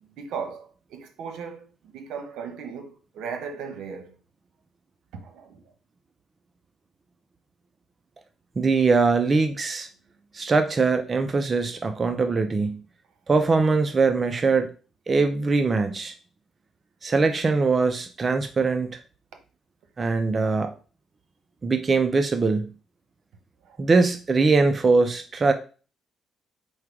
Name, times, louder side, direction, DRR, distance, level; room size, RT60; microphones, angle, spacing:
voice 1, 0.0-4.2 5.1-5.7 23.6-23.8, right 6 dB, 85° right, 1.0 m, -37 dB
voice 2, 8.6-9.9 10.3-12.8 13.3-14.7 15.1-16.1 17.0-19.0 20.0-20.7 21.6-22.7 23.8-25.5, right 4 dB, 35° right, 0.4 m, -22 dB
4.7 x 2.3 x 4.6 m
cardioid pair, 90°, 0 cm